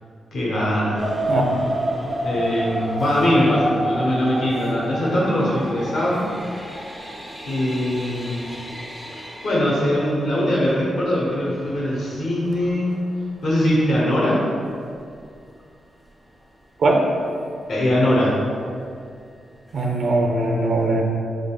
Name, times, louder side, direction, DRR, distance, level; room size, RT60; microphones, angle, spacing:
voice 1, 0.3-1.0 2.2-6.2 7.4-8.6 9.4-12.9 13.4-14.4 17.7-18.4, left 1 dB, 70° left, -6 dB, 1.0 m, -21 dB
sound 1, 1.0-13.6 14.2-14.3 14.8-15.0 15.3-15.4, right 1 dB, ahead, 0.4 m, -31 dB
voice 2, 1.3-1.7 16.8-17.0 19.7-21.0, right 2 dB, 60° right, 1 dB, 0.6 m, -20 dB
4.8 x 3.8 x 2.3 m, 2.3 s
cardioid pair, 110°, 0 cm